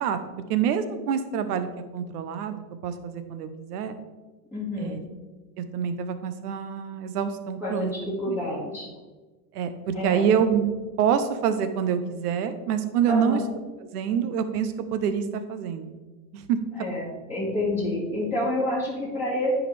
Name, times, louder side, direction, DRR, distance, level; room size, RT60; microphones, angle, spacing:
voice 1, 0.5-1.7 1.9-3.9 4.8-5.0 5.6-7.9 8.3-8.4 9.5-10.7 11.0-13.4 13.9-16.0 16.3-16.6 16.9-17.0, right 8 dB, 80° right, 10 dB, 0.9 m, -26 dB
voice 2, 4.5-4.9 7.6-8.9 9.9-10.2 13.1-13.4 16.7-19.6, left 1 dB, 5° right, -9 dB, 2.1 m, -28 dB
10.0 x 4.9 x 3.4 m, 1.3 s
supercardioid pair, 140°, 45 cm